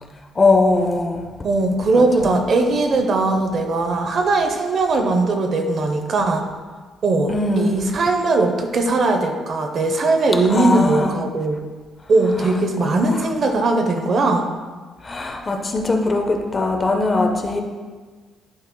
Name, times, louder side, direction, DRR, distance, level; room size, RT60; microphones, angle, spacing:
voice 1, 0.4-1.3 1.9-2.3 7.3-7.8 10.5-11.1 15.0-17.6, left 3 dB, 20° left, 3 dB, 0.6 m, -20 dB
voice 2, 1.4-6.5 7.0-7.3 7.6-11.6 12.1-14.5, right 2 dB, 45° right, 5 dB, 0.6 m, -19 dB
11.5 x 4.5 x 2.2 m, 1.4 s
cardioid pair, 150°, 0 cm